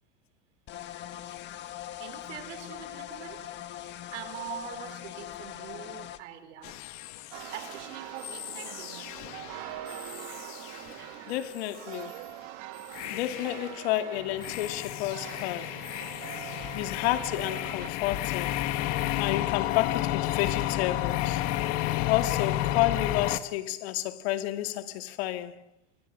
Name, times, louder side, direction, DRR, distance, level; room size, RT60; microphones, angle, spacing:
sound 1, 0.7-6.2, left 12 dB, 30° left, 1.7 m, -41 dB
voice 1, 2.0-3.4 4.1-6.8 7.5-9.3, right 10 dB, 85° right, 4.8 m, -43 dB
sound 2, 6.6-11.1 11.4-11.7 12.9-13.8 14.2-23.4, left 14 dB, 50° left, 1.7 m, -32 dB
sound 3, 7.3-17.9, right 14 dB, 45° right, 1.9 m, -43 dB
voice 2, 11.3-12.2 13.1-15.8 16.7-18.6 19.2-21.4 22.1-25.5, left 14 dB, 65° left, 2.4 m, -30 dB
27.0 x 25.0 x 7.7 m
supercardioid pair, 150°, 34 cm